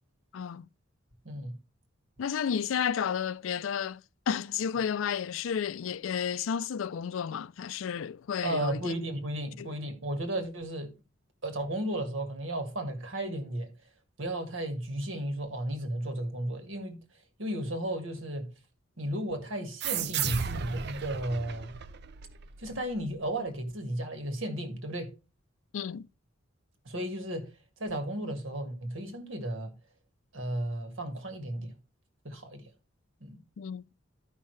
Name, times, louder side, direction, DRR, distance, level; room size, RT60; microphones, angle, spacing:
voice 1, 0.3-0.7 2.2-4.0 4.3-8.9 9.6-9.7 25.7-26.1 33.6-33.8, left 7 dB, 75° left, 0.4 m, -32 dB
voice 2, 1.3-1.6 8.4-10.9 11.4-13.7 14.2-17.0 17.4-18.5 19.0-21.7 22.6-25.1 26.9-27.5 27.8-29.7 30.3-31.8 32.2-32.7 33.2-33.4, right 1 dB, 75° right, 1.8 m, -34 dB
sound 1, 19.8-23.0, right 8 dB, 55° right, 0.5 m, -35 dB
12.5 x 5.5 x 3.2 m
head